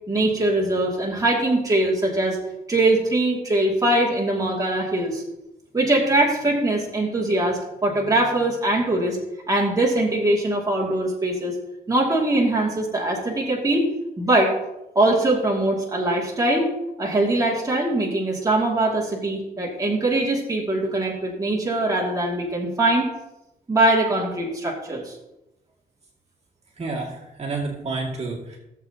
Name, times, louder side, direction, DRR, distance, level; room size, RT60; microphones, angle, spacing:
voice 1, 0.1-2.4 2.7-5.2 5.7-9.2 9.5-11.5 11.9-13.9 14.2-14.5 14.9-16.7 17.0-23.1 23.7-25.1, right 1 dB, 20° right, -3 dB, 2.4 m, -22 dB
voice 2, 26.8-28.6, right 3 dB, 40° right, -3 dB, 2.3 m, -30 dB
16.5 x 7.5 x 2.9 m, 0.94 s
cardioid pair, 105°, 16 cm